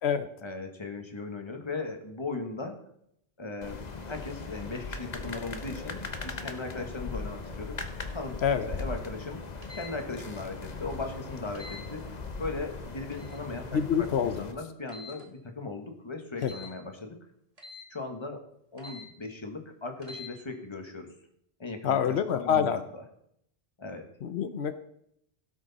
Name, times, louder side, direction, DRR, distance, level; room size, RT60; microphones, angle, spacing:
voice 1, 0.4-2.8 3.4-3.8 4.1-7.8 8.1-8.4 8.7-12.1 12.4-17.2 17.9-18.4 18.7-21.1 21.6-23.0 23.8-24.1, left 3 dB, 25° left, 4 dB, 1.5 m, -38 dB
sound 1, 3.6-14.5, left 4 dB, 45° left, 1.0 m, -39 dB
sound 2, 9.6-9.9 11.5-11.8 13.1-13.4 14.9-15.2 16.4-16.7 17.6-17.9 18.8-19.1 20.0-20.3, left 4 dB, 35° right, 1.8 m, -45 dB
voice 2, 13.7-14.5 16.4-16.5 21.8-22.8 24.2-24.7, left 8 dB, 85° left, 10 dB, 1.0 m, -26 dB
16.5 x 6.3 x 4.1 m, 0.73 s
omnidirectional pair, 1.1 m